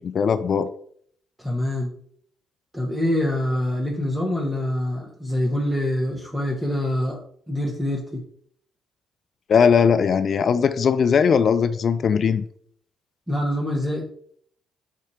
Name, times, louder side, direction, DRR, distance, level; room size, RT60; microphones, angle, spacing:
voice 1, 0.1-0.7 9.5-12.4, left 6 dB, 50° left, 11 dB, 0.4 m, -19 dB
voice 2, 1.4-1.9 2.7-7.2 7.5-8.2 13.3-14.1, left 1 dB, 10° right, -1 dB, 1.4 m, -25 dB
7.3 x 2.7 x 4.8 m, 0.63 s
hypercardioid pair, 45°, 0 cm